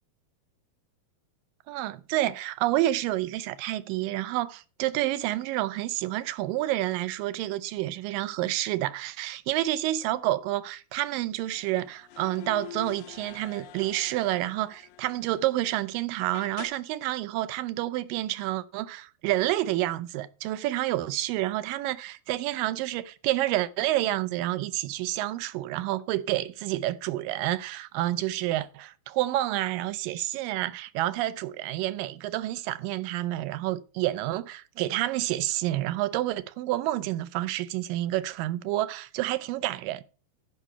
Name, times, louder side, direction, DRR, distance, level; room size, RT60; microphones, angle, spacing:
voice 1, 1.7-40.0, right 15 dB, 80° right, 2.1 m, -29 dB
sound 1, 11.5-15.9 16.3-16.7, left 11 dB, 75° left, 1.9 m, -46 dB
11.0 x 5.6 x 5.8 m
omnidirectional pair, 4.4 m